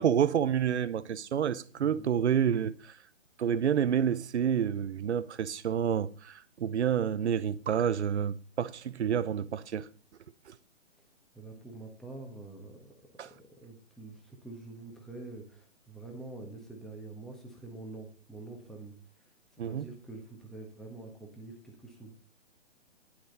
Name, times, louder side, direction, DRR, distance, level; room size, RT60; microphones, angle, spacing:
voice 1, 0.0-2.9 3.4-9.9 13.2-13.3 19.6-19.8, right 8 dB, 60° right, 0.8 m, -29 dB
voice 2, 1.8-2.1 11.3-12.9 13.3-19.0 19.6-22.2, right 2 dB, ahead, 1.2 m, -46 dB
10.0 x 8.7 x 4.1 m
figure-of-eight pair, 145°, 38 cm